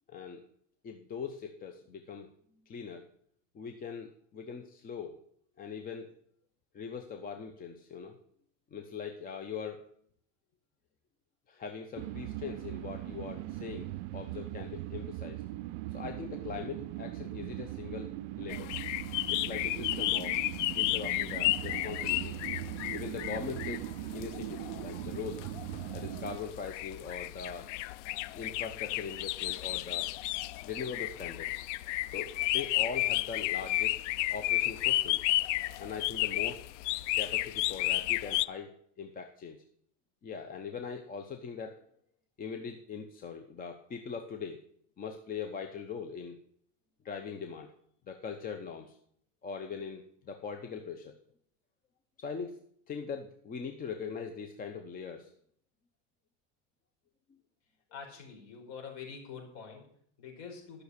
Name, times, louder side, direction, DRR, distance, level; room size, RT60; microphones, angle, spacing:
voice 1, 0.1-0.4 0.8-2.3 2.7-3.1 3.5-5.2 5.6-6.1 6.7-8.2 8.7-9.8 11.5-15.4 15.9-18.1 18.4-18.7 19.3-20.4 20.7-22.4 22.9-25.5 25.9-27.7 28.3-30.1 30.6-31.6 32.1-34.0 34.3-35.3 35.8-36.7 37.2-39.6 40.2-41.8 42.4-44.6 45.0-46.4 47.0-47.7 48.1-49.0 49.4-51.1 52.2-52.6 52.9-55.3, left 6 dB, 25° left, 5 dB, 0.9 m, -41 dB
sound 1, 12.0-26.4, right 16 dB, 55° right, 0.5 m, -40 dB
sound 2, 18.5-38.4, left 17 dB, 70° left, 0.6 m, -33 dB
voice 2, 57.9-60.8, left 6 dB, 50° left, 1 dB, 4.8 m, -46 dB
12.5 x 6.5 x 6.6 m, 0.64 s
supercardioid pair, 140°, 37 cm